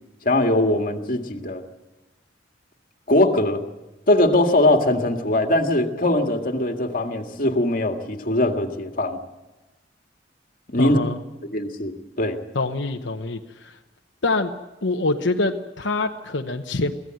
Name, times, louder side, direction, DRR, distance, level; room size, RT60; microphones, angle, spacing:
voice 1, 0.2-1.6 3.1-3.6 4.1-9.2 10.7-11.0 11.5-12.4, left 1 dB, 50° left, 4 dB, 2.0 m, -21 dB
voice 2, 10.8-11.2 12.5-13.8 14.2-14.5 14.8-16.9, left 3 dB, 85° left, 4 dB, 1.0 m, -25 dB
24.0 x 16.0 x 7.8 m, 1.1 s
head